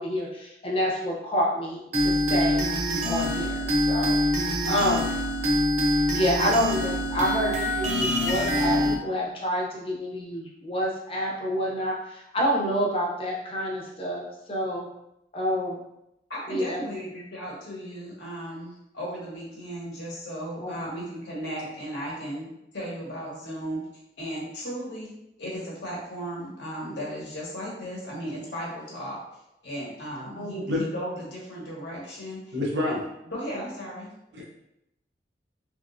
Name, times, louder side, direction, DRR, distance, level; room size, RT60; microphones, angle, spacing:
voice 1, 0.0-2.7 3.1-4.2 4.7-5.1 6.1-14.9 15.3-15.8 16.5-16.8 20.6-20.7 30.3-30.7, equal, 30° left, -3 dB, 0.6 m, -28 dB
sound 1, 1.9-9.0, left 1 dB, 40° right, 0.5 m, -25 dB
voice 2, 16.3-23.8 24.2-25.1 25.4-29.2 29.6-32.5 32.8-32.9 33.3-34.1, equal, 80° left, -5 dB, 1.2 m, -36 dB
voice 3, 32.5-33.0 34.3-34.5, left 2 dB, 90° right, -2 dB, 0.8 m, -27 dB
3.5 x 2.9 x 2.5 m, 0.84 s
head